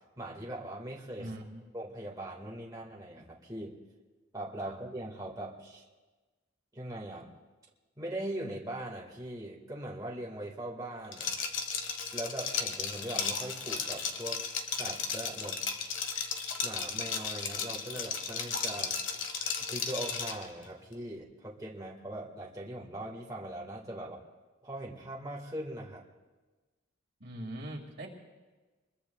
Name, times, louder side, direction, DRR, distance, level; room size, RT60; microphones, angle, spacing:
voice 1, 0.2-1.4 1.7-3.8 4.3-5.9 6.7-7.3 8.0-11.3 12.1-14.5 14.7-15.6 16.6-19.4 19.7-24.2 24.6-26.0, right 1 dB, 20° right, -3 dB, 1.8 m, -40 dB
voice 2, 1.2-1.7 4.6-4.8 24.0-24.1 27.2-28.1, right 1 dB, 55° right, 0 dB, 2.3 m, -42 dB
Liquid, 11.1-20.5, left 6 dB, 65° left, 1.5 m, -35 dB
25.5 x 21.5 x 2.4 m, 1.3 s
head